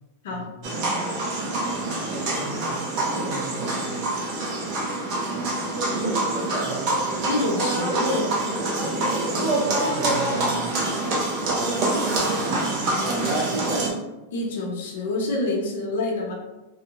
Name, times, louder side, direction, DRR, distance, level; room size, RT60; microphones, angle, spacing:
voice 1, 0.3-0.8 2.3-4.0 5.7-6.2 6.6-6.9 8.5-10.7 12.0-13.6, right 2 dB, 20° right, -10 dB, 1.1 m, -37 dB
sound 1, 0.6-13.9, right 2 dB, 40° right, 0.6 m, -25 dB
voice 2, 7.2-8.3 14.3-16.3, left 2 dB, 65° left, -2 dB, 0.8 m, -27 dB
2.8 x 2.1 x 2.8 m, 1.0 s
supercardioid pair, 165°, 0 cm